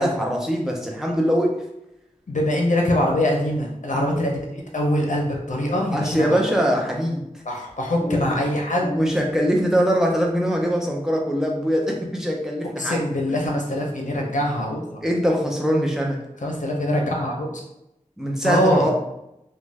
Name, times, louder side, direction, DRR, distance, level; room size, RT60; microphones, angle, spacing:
voice 1, 0.0-1.6 3.9-4.0 5.9-7.3 8.0-8.3 8.8-13.4 15.0-16.2 18.2-18.9, equal, 5° right, -1 dB, 0.6 m, -22 dB
voice 2, 2.3-6.4 7.5-8.9 12.8-15.0 16.4-17.6 18.4-18.9, left 1 dB, 70° left, 0 dB, 0.7 m, -23 dB
2.5 x 2.3 x 3.3 m, 0.84 s
wide cardioid pair, 45°, 13 cm